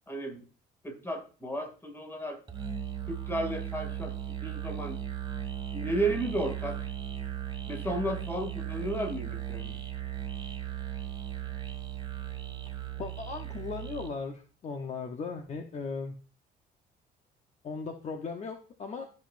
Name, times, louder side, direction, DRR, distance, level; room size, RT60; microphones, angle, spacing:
voice 1, 0.1-0.4 0.8-2.4 3.1-4.1 4.4-5.0 5.7-6.9 7.7-9.8, right 1 dB, 15° left, 5 dB, 2.2 m, -33 dB
Musical instrument, 2.5-14.2, right 10 dB, 25° right, 2.0 m, -37 dB
voice 2, 13.0-16.1 17.6-19.0, left 4 dB, 40° left, 4 dB, 0.9 m, -37 dB
12.5 x 5.3 x 2.5 m, 0.37 s
cardioid pair, 110°, 17 cm